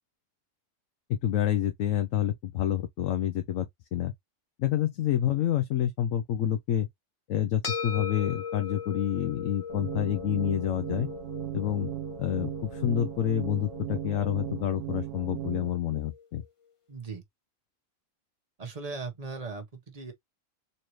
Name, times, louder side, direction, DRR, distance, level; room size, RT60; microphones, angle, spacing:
voice 1, 1.1-4.1 4.6-6.9 7.3-11.1 11.5-11.9 12.2-16.4, left 11 dB, 75° left, 1.0 m, -28 dB
sound 1, 7.6-16.2, left 6 dB, 25° left, 0.9 m, -40 dB
sound 2, 9.7-15.7, right 13 dB, 70° right, 0.9 m, -37 dB
voice 2, 16.9-17.2 18.6-20.1, right 4 dB, 30° right, 1.1 m, -38 dB
4.1 x 2.7 x 3.0 m
omnidirectional pair, 1.4 m